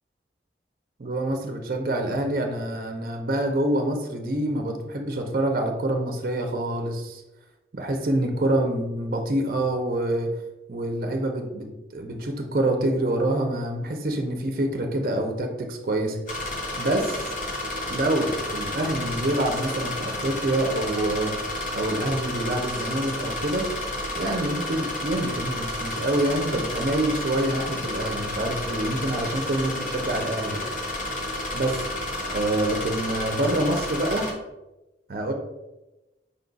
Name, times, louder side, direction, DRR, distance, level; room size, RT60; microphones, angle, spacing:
voice 1, 1.0-7.2 7.7-10.3 10.7-16.2 16.8-17.3 17.9-21.3 21.7-23.7 24.2-30.7 31.5-31.9 32.3-34.3 35.1-35.3, right 1 dB, 50° right, 3 dB, 0.5 m, -26 dB
sound 1, 16.3-34.3, left 1 dB, 45° left, 0.9 m, -31 dB
5.5 x 2.3 x 3.9 m, 1.0 s
head